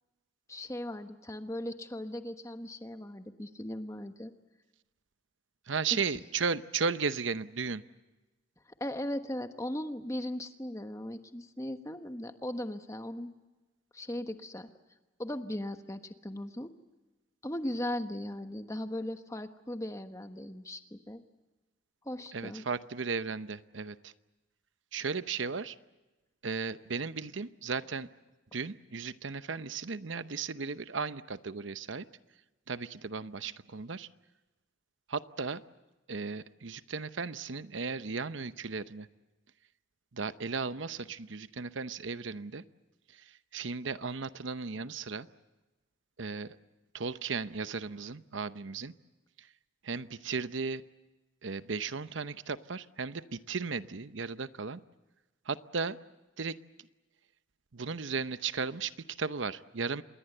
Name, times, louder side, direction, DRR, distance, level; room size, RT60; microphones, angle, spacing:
voice 1, 0.5-4.3 5.9-6.2 8.8-13.3 13.9-14.7 15.2-16.7 17.4-21.2 22.0-22.6, left 1 dB, 15° left, 8 dB, 1.2 m, -38 dB
voice 2, 5.7-7.8 22.3-24.1 24.9-25.8 26.4-28.1 28.5-32.0 32.7-34.1 35.1-35.6 36.1-39.1 40.1-42.6 43.1-45.3 46.2-46.6 46.9-48.9 49.4-49.5 49.8-50.8 51.4-54.8 55.5-56.0 56.4-56.6 57.7-60.0, right 5 dB, 75° right, 13 dB, 0.8 m, -35 dB
27.0 x 21.5 x 7.9 m, 1.1 s
head